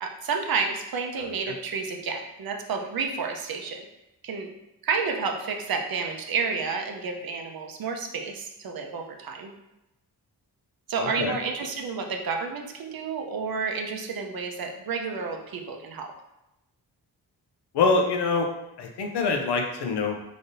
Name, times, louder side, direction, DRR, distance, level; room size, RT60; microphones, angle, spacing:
voice 1, 0.0-3.8 4.2-4.5 4.8-9.5 10.9-16.1, right 5 dB, 60° right, 3 dB, 0.7 m, -30 dB
voice 2, 11.0-11.3 17.7-18.5 18.8-20.1, left 4 dB, 90° left, 3 dB, 0.6 m, -24 dB
4.0 x 3.4 x 2.6 m, 0.90 s
cardioid pair, 60°, 40 cm